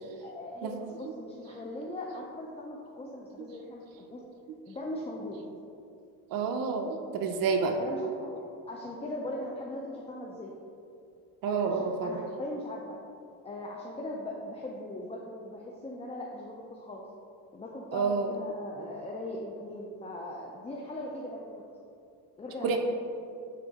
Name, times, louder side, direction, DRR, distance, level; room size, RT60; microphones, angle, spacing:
voice 1, 0.2-4.2 4.7-5.4 7.8-8.4 8.7-10.5 11.5-13.0 13.4-17.0 17.5-21.4 22.4-22.8, left 1 dB, 15° left, -1 dB, 0.4 m, -40 dB
voice 2, 6.3-7.8 11.4-12.1 17.9-18.3 22.6-22.8, right 5 dB, 60° right, 4 dB, 0.6 m, -29 dB
7.0 x 3.7 x 3.6 m, 2.6 s
cardioid pair, 110°, 39 cm